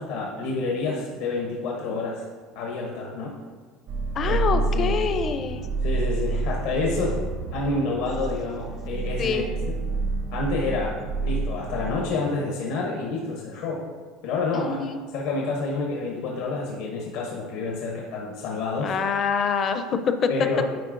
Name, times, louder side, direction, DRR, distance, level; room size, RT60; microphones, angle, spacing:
voice 1, 0.0-2.2 2.5-3.3 4.2-4.4 4.7-5.0 5.8-7.2 7.5-9.4 10.3-11.0 11.2-13.8 14.2-18.9 20.3-20.6, left 3 dB, 75° left, -1 dB, 0.8 m, -28 dB
sound 1, 3.9-12.2, right 3 dB, 65° right, 0.8 m, -28 dB
voice 2, 4.1-5.6 9.2-9.5 14.5-15.0 18.8-20.3, left 6 dB, 35° left, 8 dB, 0.5 m, -25 dB
9.3 x 4.4 x 2.5 m, 1.5 s
supercardioid pair, 120°, 0 cm